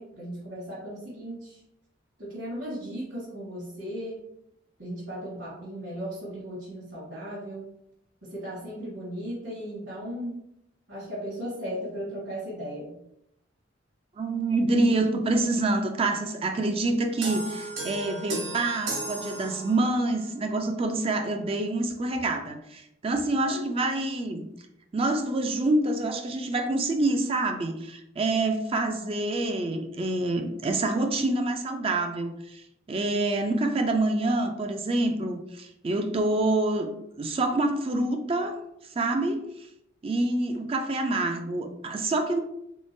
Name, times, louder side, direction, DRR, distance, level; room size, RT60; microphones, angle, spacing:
voice 1, 0.0-1.6 2.2-4.2 4.8-7.7 8.2-10.4 10.9-13.0 23.4-23.6, equal, 60° right, -9 dB, 1.5 m, -36 dB
voice 2, 14.2-24.5 24.9-36.9 37.2-38.6 38.9-39.4 40.0-42.4, right 2 dB, 30° right, 4 dB, 0.4 m, -27 dB
sound 1, 17.2-20.1, right 2 dB, 80° right, 1.1 m, -35 dB
3.7 x 3.6 x 2.6 m, 0.79 s
head